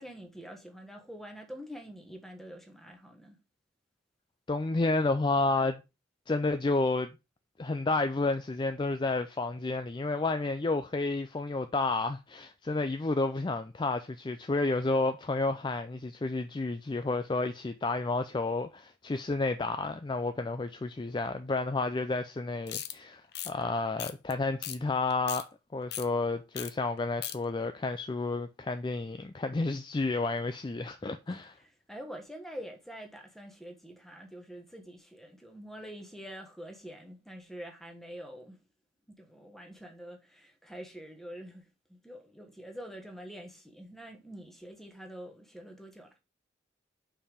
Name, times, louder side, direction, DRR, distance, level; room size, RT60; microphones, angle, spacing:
voice 1, 0.0-3.4 31.6-38.6 39.1-46.1, equal, ahead, 1.3 m, -46 dB
voice 2, 4.5-5.8 6.3-7.1 7.6-31.5, left 3 dB, 25° left, 0.4 m, -31 dB
sound 1, 22.7-22.9 23.3-23.5 24.0-24.3 24.6-24.8 25.1-25.4 25.9-26.1 26.5-26.7 27.0-27.4, left 12 dB, 55° left, 0.7 m, -37 dB
5.6 x 4.6 x 4.9 m
head